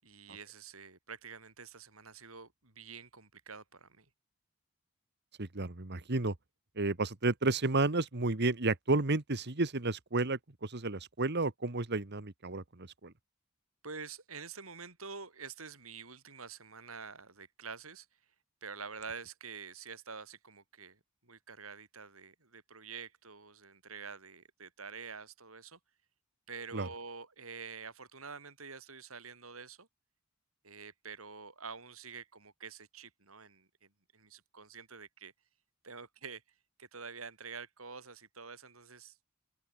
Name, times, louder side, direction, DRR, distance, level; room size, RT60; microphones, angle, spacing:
voice 1, 0.0-4.1 13.8-18.1 18.6-25.8 26.5-29.9 30.6-35.3 35.8-36.4 36.8-39.2, right 5 dB, 80° right, 5.7 m, -47 dB
voice 2, 5.4-6.3 6.8-13.1 26.7-26.9, right 2 dB, 55° right, 1.6 m, -32 dB
open air
head